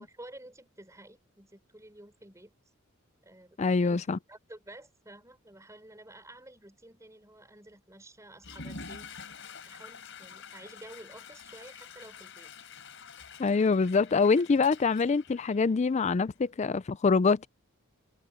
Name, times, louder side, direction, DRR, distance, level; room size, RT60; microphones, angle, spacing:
voice 1, 0.0-2.5 3.2-3.6 3.8-12.5, right 1 dB, 15° right, 5.0 m, -51 dB
voice 2, 3.6-4.2 13.4-17.5, left 4 dB, 35° left, 0.4 m, -25 dB
Water / Toilet flush, 8.3-16.1, left 5 dB, 60° left, 5.5 m, -47 dB
head